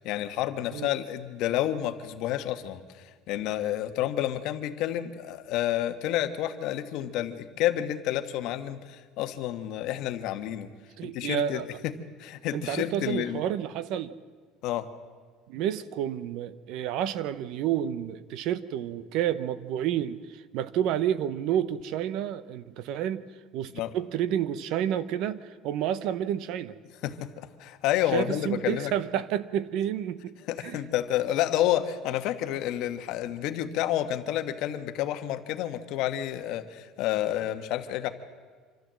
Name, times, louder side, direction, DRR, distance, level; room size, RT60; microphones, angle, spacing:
voice 1, 0.0-10.7 11.0-13.4 14.6-14.9 23.7-23.9 27.0-28.9 30.5-38.1, left 12 dB, 60° left, 8 dB, 1.3 m, -30 dB
voice 2, 11.0-11.6 12.5-14.1 15.5-23.2 23.5-26.7 28.1-30.3 30.6-30.8, right 10 dB, 60° right, 15 dB, 0.8 m, -30 dB
26.0 x 13.0 x 7.6 m, 1.5 s
cardioid pair, 155°, 0 cm